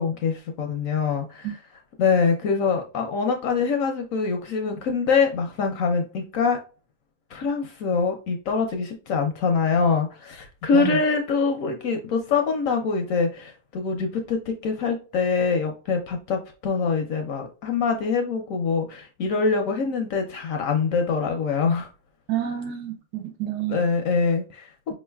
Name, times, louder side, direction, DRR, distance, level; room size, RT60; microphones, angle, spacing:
voice 1, 0.0-1.6 2.0-6.6 7.3-21.9 23.7-24.7, left 5 dB, 70° left, 0.8 m, -24 dB
voice 2, 22.3-23.8, right 9 dB, 80° right, 1.3 m, -29 dB
4.8 x 3.1 x 2.2 m
omnidirectional pair, 1.8 m